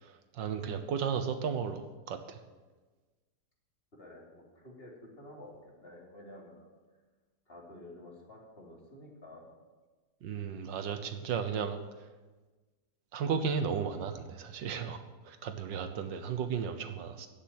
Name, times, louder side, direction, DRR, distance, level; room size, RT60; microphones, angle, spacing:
voice 1, 0.4-1.8 2.1-2.2 10.2-11.8 13.1-17.3, right 6 dB, 80° right, 9 dB, 1.7 m, -34 dB
voice 2, 3.9-6.7 7.5-9.4, left 1 dB, 30° left, -2 dB, 3.3 m, -51 dB
14.5 x 7.3 x 9.6 m, 1.3 s
omnidirectional pair, 2.0 m